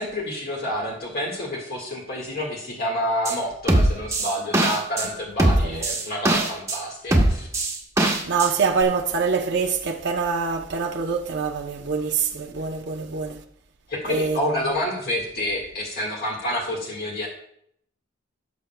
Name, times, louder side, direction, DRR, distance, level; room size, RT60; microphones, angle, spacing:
voice 1, 0.0-7.5 13.9-17.3, left 1 dB, 55° left, 1.7 m, -28 dB
sound 1, 3.3-3.4 3.7-5.1 5.4-6.8 7.1-8.5 8.8-8.9, right 1 dB, 15° right, 1.1 m, -20 dB
voice 2, 8.2-13.4 14.1-14.4, right 5 dB, 60° right, 0.7 m, -25 dB
17.0 x 7.1 x 2.3 m
head